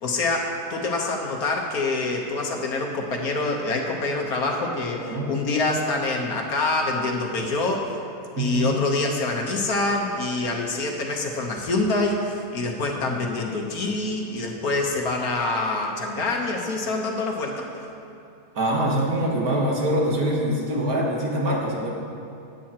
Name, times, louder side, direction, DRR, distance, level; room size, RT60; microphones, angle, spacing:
voice 1, 0.0-7.9 8.4-17.9, left 2 dB, 65° left, 1 dB, 1.5 m, -26 dB
voice 2, 5.0-5.3 8.4-8.7 18.6-21.9, right 1 dB, 65° right, -2 dB, 1.9 m, -24 dB
16.0 x 8.6 x 2.9 m, 2.8 s
omnidirectional pair, 1.7 m